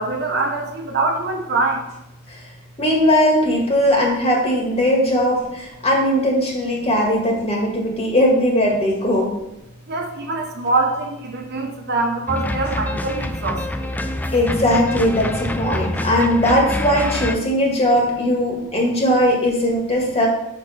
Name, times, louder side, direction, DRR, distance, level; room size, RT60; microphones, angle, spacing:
voice 1, 0.0-1.8 9.9-13.9, right 3 dB, 55° right, 2 dB, 1.1 m, -23 dB
voice 2, 2.8-9.3 14.3-20.3, equal, 30° left, -1 dB, 1.9 m, -19 dB
sound 1, 12.3-17.4, left 1 dB, 10° left, 0.4 m, -26 dB
6.4 x 5.9 x 4.4 m, 0.88 s
head